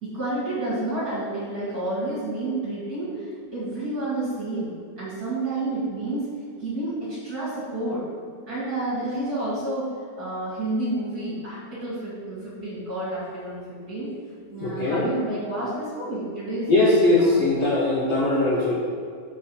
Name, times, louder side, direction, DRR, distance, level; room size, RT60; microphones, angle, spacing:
voice 1, 0.0-6.3 6.6-8.0 8.5-14.1 14.5-16.7 17.2-17.5, right 2 dB, 30° right, -9 dB, 1.9 m, -30 dB
voice 2, 14.6-15.1 16.7-18.8, left 2 dB, 85° left, -5 dB, 1.4 m, -20 dB
6.4 x 5.3 x 5.4 m, 2.2 s
omnidirectional pair, 4.4 m